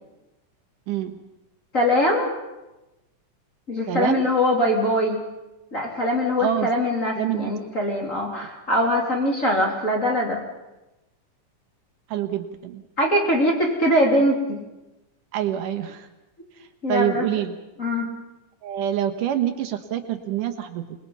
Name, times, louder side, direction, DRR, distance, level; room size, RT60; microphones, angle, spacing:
voice 1, 0.9-1.2 3.9-4.2 6.4-6.7 7.2-7.5 8.3-8.5 12.1-12.8 15.3-16.1 16.9-17.6 18.6-20.8, right 11 dB, 85° right, 6 dB, 2.9 m, -26 dB
voice 2, 1.7-2.3 3.7-5.2 5.7-10.4 13.0-14.6 16.8-17.3 17.8-18.1, left 1 dB, 25° left, -1 dB, 3.4 m, -22 dB
27.0 x 20.5 x 5.7 m, 1.0 s
omnidirectional pair, 3.6 m